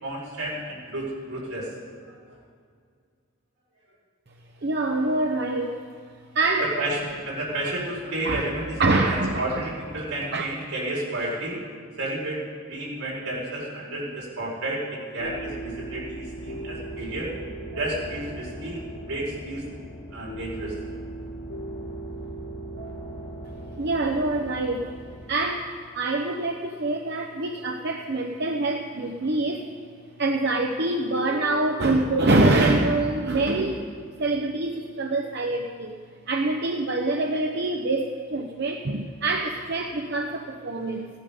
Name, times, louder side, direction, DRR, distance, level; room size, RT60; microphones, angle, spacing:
voice 1, 0.0-1.7 6.6-11.6 12.0-17.3 17.7-18.8 19.0-19.6 20.1-20.7, right 1 dB, 75° right, -5 dB, 4.8 m, -31 dB
voice 2, 4.6-5.8 6.3-6.7 8.2-8.4 8.8-9.6 10.3-10.4 23.8-24.9 25.3-25.7 25.9-29.7 30.2-33.8 34.2-36.0 36.3-41.1, right 2 dB, 50° right, 2 dB, 0.7 m, -25 dB
sound 1, 15.2-25.3, right 2 dB, 60° left, 1.7 m, -38 dB
16.5 x 11.0 x 5.4 m, 2.1 s
head